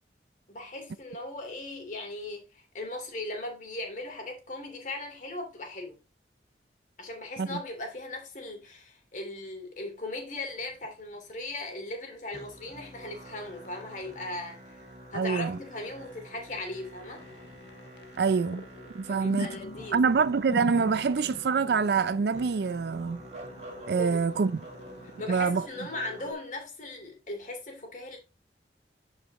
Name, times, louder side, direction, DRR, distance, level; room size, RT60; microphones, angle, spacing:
voice 1, 0.5-6.0 7.0-14.8 15.1-17.3 19.1-20.0 24.0-24.3 25.2-28.2, left 2 dB, 45° left, 2.7 m, -38 dB
sound 1, 10.4-11.5 12.6-15.6 15.9-16.0 16.4-25.6, left 2 dB, 75° left, 0.7 m, -45 dB
Musical instrument, 12.3-26.3, equal, 40° right, 2.2 m, -47 dB
voice 2, 15.1-15.6 18.2-18.7 18.9-19.5 19.9-23.2 23.9-24.6 25.3-25.6, right 5 dB, 65° right, 0.4 m, -25 dB
11.0 x 4.8 x 3.0 m
head